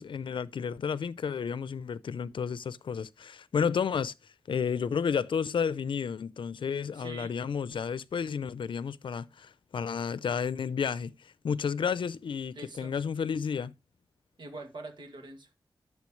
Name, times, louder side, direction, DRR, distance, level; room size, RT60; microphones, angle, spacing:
voice 1, 0.0-4.1 4.5-13.7, left 6 dB, 90° left, 0.6 m, -32 dB
voice 2, 6.9-7.3 12.5-13.0 14.4-15.6, right 2 dB, 65° right, 2.2 m, -44 dB
12.0 x 6.8 x 3.1 m
wide cardioid pair, 130°, 8 cm